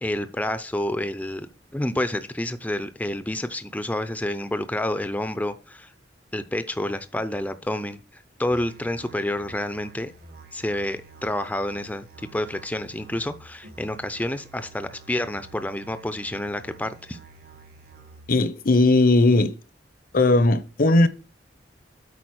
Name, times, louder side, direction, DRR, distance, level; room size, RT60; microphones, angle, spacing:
voice 1, 0.0-5.9 6.3-10.1 10.5-17.2, left 1 dB, 10° left, 0.6 m, -29 dB
Musical instrument, 8.5-18.4, right 4 dB, 55° right, 1.4 m, -49 dB
voice 2, 18.3-19.5 20.1-21.1, left 2 dB, 55° left, 0.8 m, -18 dB
8.5 x 5.0 x 6.3 m
head